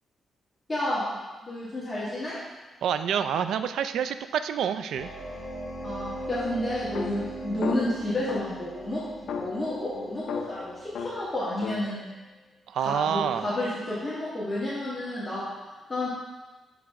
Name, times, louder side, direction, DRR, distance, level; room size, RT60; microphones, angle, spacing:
voice 1, 0.7-1.2 1.4-2.3 5.8-9.0 9.4-12.0 12.8-15.5 15.9-16.1, left 1 dB, 20° left, -10 dB, 1.6 m, -30 dB
voice 2, 2.8-5.1 12.7-13.5, right 8 dB, 85° right, 10 dB, 0.3 m, -27 dB
sound 1, 5.0-11.5, right 1 dB, 50° left, 1.2 m, -39 dB
sound 2, 6.9-8.7 9.3-11.9, left 6 dB, 75° left, 0.4 m, -36 dB
6.8 x 5.2 x 3.6 m, 1.2 s
cardioid pair, 115°, 0 cm